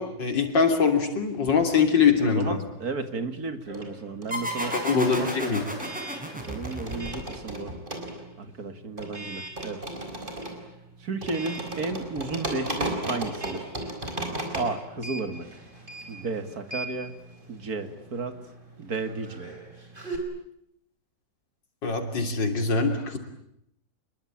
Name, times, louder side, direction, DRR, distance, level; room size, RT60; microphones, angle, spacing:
voice 1, 0.0-2.6 4.6-5.6 21.8-23.2, left 5 dB, 85° left, 5 dB, 3.7 m, -23 dB
sound 1, 1.3-2.6 2.9-20.2, right 1 dB, 25° right, 5.0 m, -37 dB
voice 2, 2.2-5.6 6.5-7.7 8.4-9.8 11.0-13.7 14.5-15.5 16.1-17.1 17.5-18.4 18.8-19.5, right 3 dB, 55° right, 9 dB, 2.7 m, -33 dB
sound 2, 4.3-7.6, equal, 5° right, 5.5 m, -33 dB
28.0 x 22.5 x 8.9 m, 0.77 s
omnidirectional pair, 1.9 m